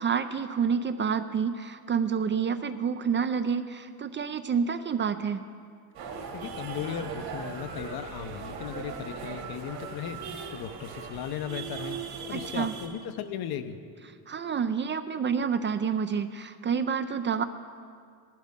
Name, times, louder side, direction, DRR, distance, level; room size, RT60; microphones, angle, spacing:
voice 1, 0.0-5.4 12.3-12.7 14.3-17.4, right 6 dB, 30° right, 10 dB, 0.4 m, -28 dB
sound 1, 5.9-12.9, right 5 dB, 60° right, 2.1 m, -39 dB
voice 2, 6.3-12.0 12.3-13.8, left 9 dB, 60° left, 10 dB, 0.9 m, -36 dB
15.0 x 12.0 x 3.7 m, 2.2 s
supercardioid pair, 95°, 42 cm